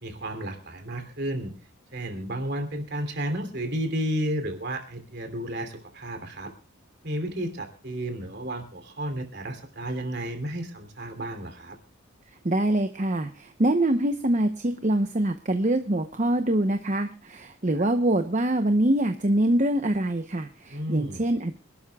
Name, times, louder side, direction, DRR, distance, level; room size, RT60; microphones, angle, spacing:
voice 1, 0.0-1.5 1.9-6.5 7.0-11.8 17.8-17.9 20.7-21.2, right 1 dB, 50° right, 6 dB, 3.0 m, -32 dB
voice 2, 12.4-21.5, right 1 dB, 35° right, 7 dB, 0.8 m, -24 dB
26.5 x 12.5 x 2.3 m, 0.34 s
head